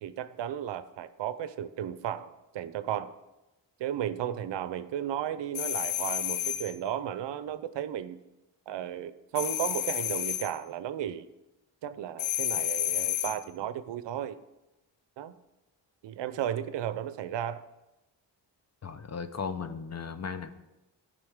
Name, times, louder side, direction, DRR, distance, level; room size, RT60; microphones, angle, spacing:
voice 1, 0.0-3.1 3.8-8.2 8.7-11.3 11.8-14.4 15.2-15.4 16.0-17.6, right 10 dB, 70° right, 13 dB, 0.6 m, -34 dB
sound 1, 5.5-6.7 9.3-10.5 12.2-13.4, left 13 dB, 85° left, 0.6 m, -31 dB
voice 2, 18.8-20.5, left 6 dB, 35° left, 11 dB, 0.8 m, -36 dB
13.0 x 5.3 x 3.6 m, 0.99 s
supercardioid pair, 50°, 45 cm